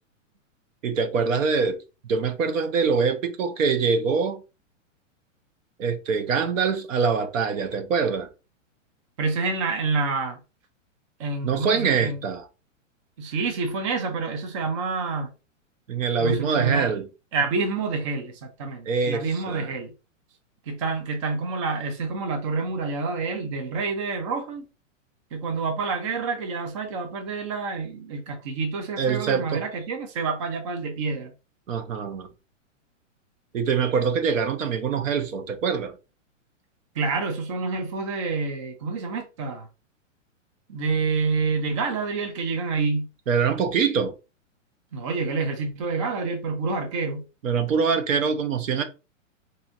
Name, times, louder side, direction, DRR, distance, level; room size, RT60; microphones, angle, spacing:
voice 1, 0.8-1.8 2.1-4.4 5.8-8.3 11.4-12.4 15.9-17.1 18.9-19.7 29.0-29.6 31.7-32.3 33.5-35.9 43.3-44.1 47.4-48.8, right 5 dB, 80° right, 1.0 m, -24 dB
voice 2, 9.2-10.4 11.2-12.2 13.2-15.3 16.2-17.0 17.3-19.9 20.7-24.6 25.3-31.3 36.9-39.7 40.7-43.1 44.9-47.3, right 4 dB, 25° right, 0.5 m, -28 dB
4.4 x 2.7 x 2.6 m
hypercardioid pair, 165°, 39 cm